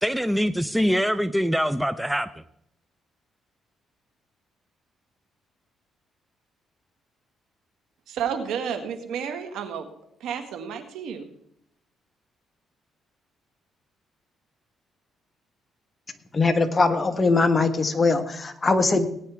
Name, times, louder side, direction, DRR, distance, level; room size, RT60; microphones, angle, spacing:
voice 1, 0.0-2.3, equal, 5° right, 12 dB, 0.6 m, -23 dB
voice 2, 8.1-9.9 10.2-11.3, right 7 dB, 85° right, 7 dB, 1.8 m, -31 dB
voice 3, 16.3-19.1, left 3 dB, 30° left, 7 dB, 1.5 m, -21 dB
19.0 x 9.9 x 3.5 m, 0.71 s
cardioid pair, 90°, 0 cm